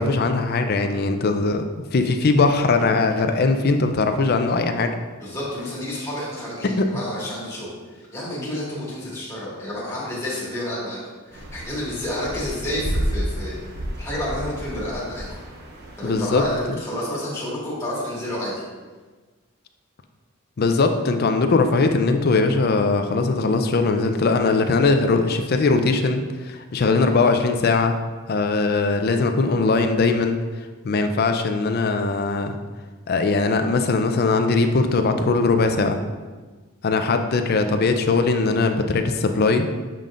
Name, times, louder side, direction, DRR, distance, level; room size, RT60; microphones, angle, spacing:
voice 1, 0.0-1.6 1.9-4.9 6.8-6.9 16.0-16.4 20.6-27.9 28.3-30.4 30.8-32.5 33.1-36.0 36.8-39.7, left 3 dB, 45° left, 7 dB, 0.4 m, -20 dB
voice 2, 5.2-11.0 11.3-13.5 14.0-15.4 16.0-18.6, left 1 dB, 15° left, -8 dB, 1.8 m, -30 dB
sound 1, 11.3-16.7, equal, 50° right, 0.8 m, -31 dB
7.4 x 5.2 x 2.5 m, 1.3 s
head